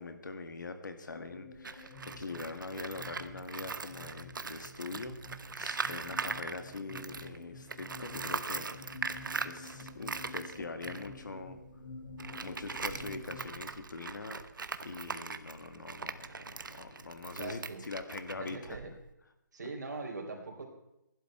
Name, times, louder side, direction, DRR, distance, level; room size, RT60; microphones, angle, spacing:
voice 1, 0.0-5.2 5.5-8.8 9.4-11.6 12.4-14.4 14.8-18.8, left 3 dB, 70° left, 8 dB, 1.9 m, -43 dB
sound 1, 1.1-13.6, left 3 dB, 50° left, 1.8 m, -49 dB
Tools, 1.5-7.4 7.7-19.1, right 4 dB, 85° right, 1.0 m, -41 dB
sound 2, 7.5-8.3 9.1-9.2 9.8-10.1 10.4-10.8 11.5-11.6 12.2-12.9 13.9-14.1 14.6-14.8 15.7-15.9 16.3-16.4 16.7-17.1, left 5 dB, 20° left, 0.8 m, -57 dB
voice 2, 17.2-17.9 18.4-18.9 19.5-20.7, right 3 dB, 65° right, 2 dB, 3.7 m, -42 dB
16.0 x 11.5 x 4.4 m, 0.90 s
hypercardioid pair, 180°, 10 cm